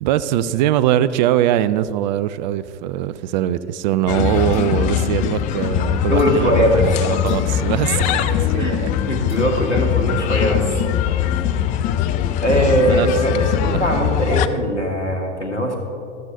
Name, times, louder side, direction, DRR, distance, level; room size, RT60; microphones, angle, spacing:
voice 1, 0.0-8.9 12.5-14.0, right 12 dB, 45° right, 15 dB, 0.4 m, -22 dB
sound 1, 4.1-14.5, left 9 dB, 25° left, 0.3 m, -21 dB
sound 2, 4.5-4.8 6.2-6.4 7.3-7.6 9.3-9.7, left 4 dB, 55° left, 1.8 m, -44 dB
voice 2, 6.1-6.9 8.6-8.8 9.1-10.7 12.4-15.8, equal, 90° left, 2 dB, 1.8 m, -20 dB
13.5 x 13.0 x 2.7 m, 2.6 s
figure-of-eight pair, 90°, 34 cm